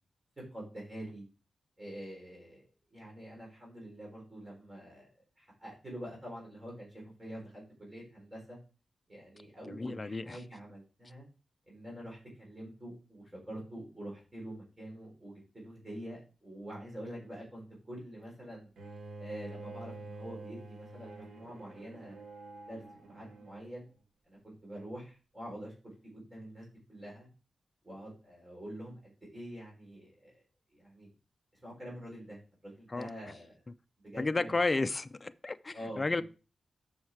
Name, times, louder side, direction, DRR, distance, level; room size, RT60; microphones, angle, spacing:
voice 1, 0.5-1.2 1.8-2.6 2.9-5.1 5.4-8.6 9.1-11.2 11.7-18.7 19.2-22.1 22.7-23.9 24.3-25.7 26.0-27.3 27.8-30.4 30.7-31.1 31.5-33.6 34.0-34.8 35.7-36.2, equal, 15° right, -3 dB, 4.6 m, -46 dB
voice 2, 9.7-10.4 32.9-33.1 34.2-36.2, left 3 dB, 25° left, 12 dB, 0.5 m, -32 dB
Bowed string instrument, 18.8-23.8, right 2 dB, 90° right, 1.6 m, -47 dB
7.3 x 6.4 x 4.7 m, 0.34 s
wide cardioid pair, 145°, 0 cm